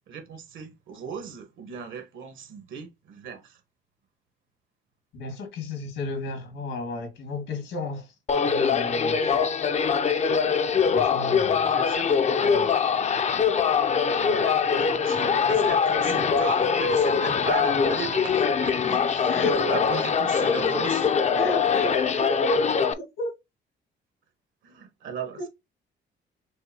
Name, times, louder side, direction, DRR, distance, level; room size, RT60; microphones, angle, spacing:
voice 1, 0.1-3.6 11.6-12.2 14.1-21.1 24.6-25.5, right 6 dB, 80° right, 1.3 m, -37 dB
voice 2, 5.1-8.1 8.4-9.4 10.9-11.7 12.5-12.7 16.1-16.2 19.3-19.6 21.4-23.3, left 2 dB, 80° left, 1.9 m, -32 dB
sound 1, 8.3-22.9, left 6 dB, 35° left, 0.4 m, -23 dB
6.3 x 2.2 x 2.8 m
cardioid pair, 90°, 20 cm